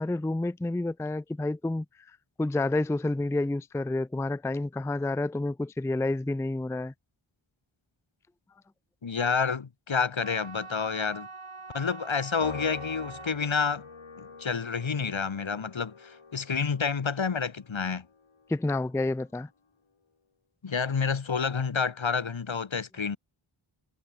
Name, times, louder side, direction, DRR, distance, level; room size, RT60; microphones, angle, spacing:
voice 1, 0.0-1.9 2.4-6.9 18.5-19.5, left 2 dB, 5° left, 0.4 m, -29 dB
voice 2, 9.0-11.3 11.7-13.9 14.2-18.1 20.6-23.2, left 5 dB, 70° left, 1.2 m, -29 dB
sound 1, 10.2-16.4, right 4 dB, 85° right, 3.4 m, -46 dB
Piano, 12.4-19.0, left 5 dB, 85° left, 2.0 m, -46 dB
wide cardioid pair, 40°, 49 cm